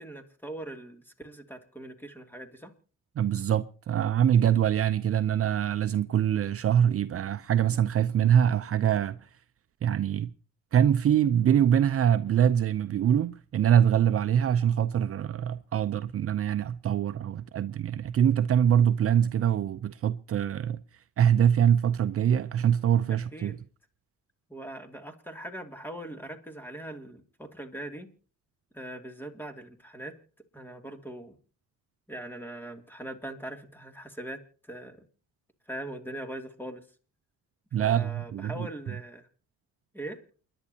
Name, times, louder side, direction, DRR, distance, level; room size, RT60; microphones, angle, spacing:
voice 1, 0.0-2.7 23.1-23.6 24.5-28.1 28.7-30.1 30.5-31.3 32.1-35.0 35.7-36.8 37.8-39.3 39.9-40.2, right 1 dB, 5° left, 2.6 m, -41 dB
voice 2, 3.2-9.2 9.8-10.3 10.7-20.8 21.2-23.6 37.7-38.7, right 9 dB, 50° right, 0.6 m, -24 dB
29.5 x 11.0 x 2.8 m
cardioid pair, 90°, 30 cm